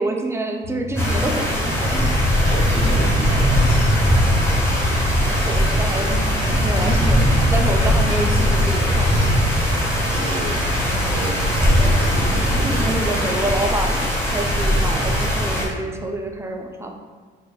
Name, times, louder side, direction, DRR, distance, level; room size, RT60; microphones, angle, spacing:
voice 1, 0.0-2.4 5.1-9.3 11.8-11.9 12.6-16.9, right 2 dB, 15° right, 3 dB, 0.4 m, -27 dB
sound 1, 0.6-10.4, left 1 dB, 75° left, 0.9 m, -33 dB
sound 2, 1.0-15.7, equal, 10° left, 1.2 m, -19 dB
voice 2, 2.4-3.9 10.1-13.5, right 1 dB, 70° right, -3 dB, 0.6 m, -31 dB
4.1 x 3.1 x 2.3 m, 1.5 s
cardioid pair, 90°, 20 cm